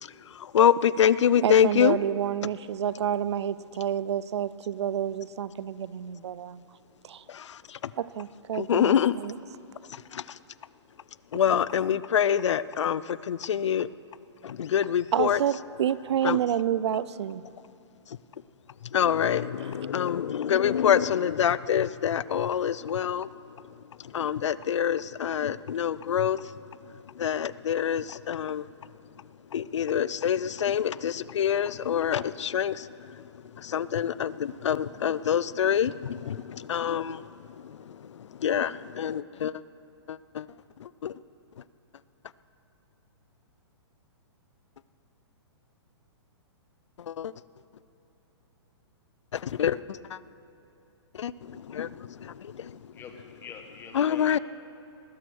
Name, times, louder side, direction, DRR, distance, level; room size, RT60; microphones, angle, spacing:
voice 1, 0.0-2.0 7.3-7.9 8.5-9.2 9.9-10.4 11.3-13.9 14.4-15.4 16.2-16.4 18.1-18.2 18.8-28.9 29.5-39.6 40.1-40.5 40.8-41.1 47.0-47.3 49.3-50.2 51.1-52.9 53.9-54.4, left 9 dB, 90° left, 18 dB, 0.5 m, -27 dB
voice 2, 1.4-6.6 7.0-7.2 8.0-9.3 15.1-17.4, right 10 dB, 70° right, 19 dB, 0.5 m, -29 dB
voice 3, 52.9-54.4, left 6 dB, 15° left, 5 dB, 1.2 m, -45 dB
19.5 x 10.5 x 6.3 m, 3.0 s
hypercardioid pair, 155°, 15 cm